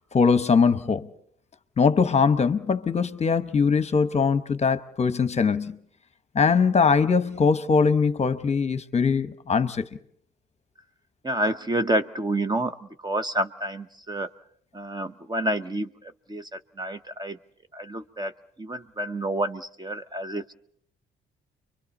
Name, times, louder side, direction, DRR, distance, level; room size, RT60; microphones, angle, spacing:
voice 1, 0.1-1.1 1.8-5.8 6.3-9.9, left 5 dB, 35° left, 0.9 m, -21 dB
voice 2, 11.2-12.8 13.0-14.3 14.7-17.4 17.7-18.3 18.6-20.5, right 1 dB, 20° right, 0.8 m, -29 dB
30.0 x 24.0 x 4.2 m
cardioid pair, 90°, 20 cm